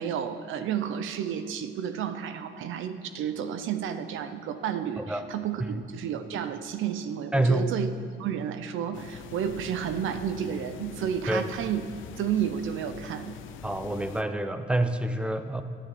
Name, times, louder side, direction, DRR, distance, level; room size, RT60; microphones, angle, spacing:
voice 1, 0.0-7.9 8.2-11.8 12.2-13.4, right 9 dB, 80° right, 10 dB, 0.9 m, -31 dB
voice 2, 7.3-7.7 11.3-11.5 13.6-15.6, right 1 dB, 5° right, 9 dB, 0.9 m, -27 dB
sound 1, 8.9-14.2, left 8 dB, 80° left, 0.8 m, -43 dB
12.5 x 9.1 x 7.9 m, 2.1 s
cardioid pair, 90°, 20 cm